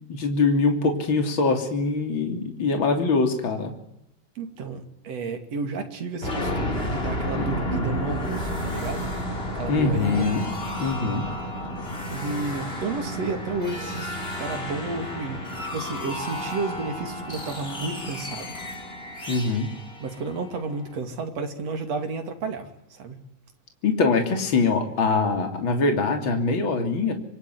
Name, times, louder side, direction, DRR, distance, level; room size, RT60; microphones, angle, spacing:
voice 1, 0.1-3.7 7.4-8.2 9.7-10.5 10.8-11.3 19.3-19.7 23.8-27.1, left 4 dB, 40° left, 4 dB, 3.7 m, -23 dB
voice 2, 4.4-9.1 9.5-10.3 12.1-18.6 20.0-23.2, right 4 dB, 60° right, 5 dB, 3.7 m, -32 dB
sound 1, 6.2-20.9, equal, 20° left, 4.4 m, -32 dB
26.0 x 22.0 x 9.6 m, 0.78 s
omnidirectional pair, 3.4 m